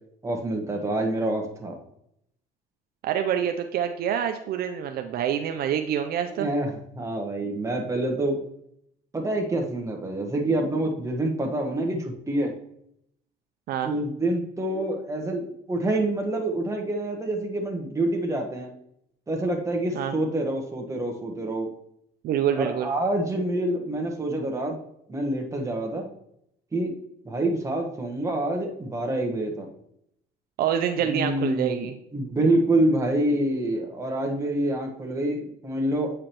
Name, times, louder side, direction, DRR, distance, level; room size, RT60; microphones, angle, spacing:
voice 1, 0.2-1.8 6.3-8.4 9.1-12.5 13.8-18.7 19.3-21.7 22.6-24.8 25.1-26.1 26.7-26.9 27.2-29.7 31.1-31.9 32.1-36.1, right 1 dB, 15° right, 1 dB, 1.2 m, -27 dB
voice 2, 3.0-6.5 13.7-13.9 19.9-20.2 22.2-22.9 30.6-31.9, right 9 dB, 65° right, 6 dB, 0.5 m, -26 dB
8.4 x 4.9 x 3.0 m, 0.75 s
cardioid pair, 110°, 17 cm